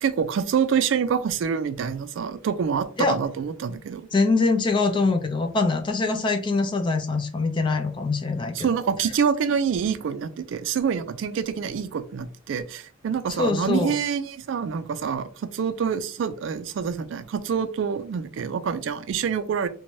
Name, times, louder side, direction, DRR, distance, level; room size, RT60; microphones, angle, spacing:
voice 1, 0.0-4.0 8.6-19.7, right 7 dB, 70° right, 0.3 m, -26 dB
voice 2, 4.1-8.8 13.4-14.0, left 3 dB, 25° left, 0.3 m, -23 dB
3.0 x 2.1 x 2.6 m
head